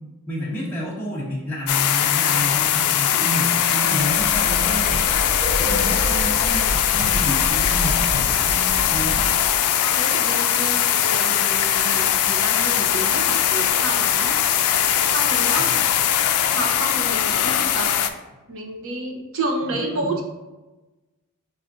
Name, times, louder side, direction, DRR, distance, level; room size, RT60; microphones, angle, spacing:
voice 1, 0.3-5.1 5.6-9.3 15.6-15.8 19.6-20.2, equal, 10° left, -8 dB, 0.6 m, -30 dB
sound 1, 1.7-18.1, left 10 dB, 75° left, 0.3 m, -20 dB
sound 2, 3.9-9.9, equal, 30° right, 1.4 m, -29 dB
voice 2, 9.9-14.4 15.1-15.7 16.5-17.9 18.5-20.2, right 2 dB, 65° right, 1 dB, 0.8 m, -30 dB
5.0 x 3.2 x 2.6 m, 1.1 s
head